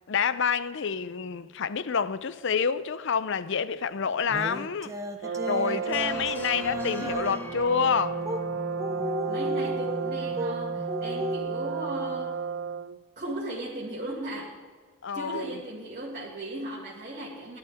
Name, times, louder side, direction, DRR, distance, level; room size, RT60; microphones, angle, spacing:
voice 1, 0.1-4.9 5.3-8.2 15.0-15.5, left 6 dB, 55° left, 0.5 m, -28 dB
sound 1, 4.3-7.5 8.2-8.4 8.7-10.5 10.9-11.4, equal, 15° right, 0.8 m, -34 dB
Brass instrument, 5.2-13.0, right 6 dB, 55° right, 0.3 m, -33 dB
voice 2, 5.7-6.2 9.3-12.3 13.2-14.6 15.1-17.6, right 1 dB, 35° right, 2.1 m, -37 dB
sound 2, 5.9-12.9, left 1 dB, 10° left, 1.2 m, -40 dB
17.0 x 11.5 x 3.5 m
head